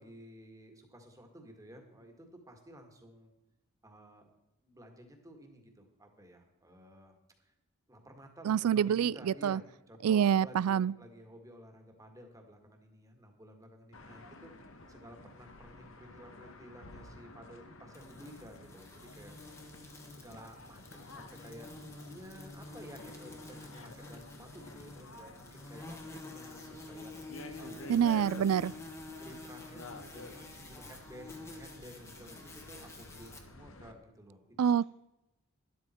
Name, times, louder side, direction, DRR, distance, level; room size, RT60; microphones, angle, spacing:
voice 1, 0.0-3.3 3.8-4.3 4.6-7.1 7.4-7.5 7.9-9.6 9.9-14.5 14.9-19.3 20.1-28.1 29.2-34.8, equal, 15° right, 1.8 m, -53 dB
voice 2, 8.5-9.6 10.0-10.9 27.9-28.7 34.6-34.8, right 8 dB, 85° right, 0.3 m, -26 dB
sound 1, 13.9-33.9, left 2 dB, 65° left, 1.4 m, -51 dB
sound 2, 17.9-33.4, left 2 dB, 15° left, 1.4 m, -49 dB
12.5 x 12.0 x 4.5 m
head